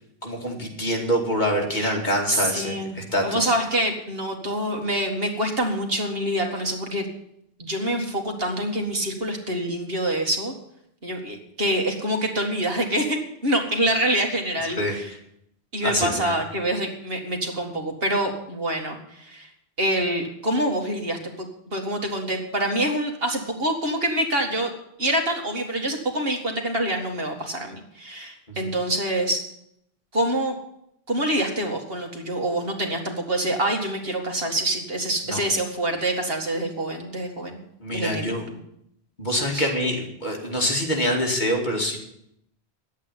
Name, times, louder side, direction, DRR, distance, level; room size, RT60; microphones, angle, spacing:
voice 1, 0.2-3.5 14.6-15.0 15.8-16.3 35.3-35.4 37.8-38.4 39.2-42.0, equal, 45° left, 0 dB, 2.7 m, -25 dB
voice 2, 2.3-3.0 3.2-7.1 7.6-10.5 11.0-15.1 15.7-19.5 19.8-24.7 25.0-29.5 30.1-30.5 31.1-37.6 37.9-38.3 39.5-39.7, right 1 dB, 65° right, 2 dB, 2.3 m, -26 dB
10.5 x 8.4 x 9.8 m, 0.75 s
omnidirectional pair, 1.1 m